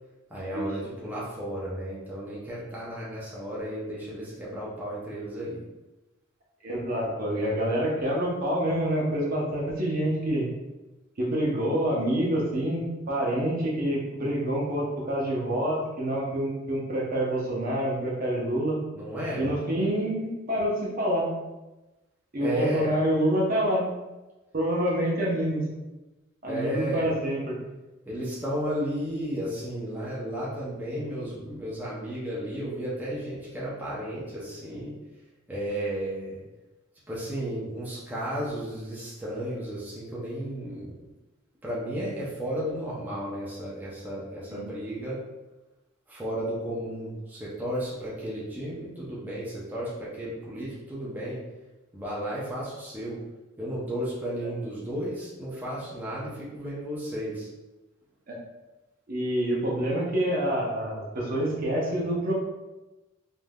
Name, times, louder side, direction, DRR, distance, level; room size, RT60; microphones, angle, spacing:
voice 1, 0.3-5.7 18.9-19.6 22.4-22.9 26.5-27.1 28.1-35.0 35.5-36.4 37.1-41.0 41.6-45.2 46.1-51.4 51.9-53.2 53.6-57.5, right 1 dB, 10° right, -7 dB, 0.6 m, -33 dB
voice 2, 6.6-10.5 11.2-18.8 19.4-21.3 22.3-23.9 24.5-25.6 26.4-27.6 44.5-44.6 58.3-58.4 59.1-62.3, right 1 dB, 45° right, -3 dB, 0.7 m, -27 dB
3.4 x 2.6 x 2.2 m, 1.1 s
head